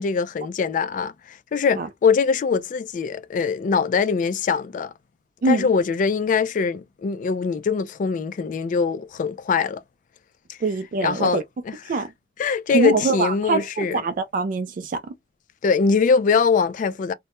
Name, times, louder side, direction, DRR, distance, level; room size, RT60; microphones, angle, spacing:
voice 1, 0.0-4.9 5.5-9.8 10.5-10.6 11.0-11.7 12.4-14.0 15.6-17.1, left 5 dB, 45° left, 0.3 m, -22 dB
voice 2, 10.6-11.4 11.9-12.1 12.7-15.1, right 3 dB, 50° right, 0.3 m, -24 dB
2.1 x 2.1 x 2.8 m
head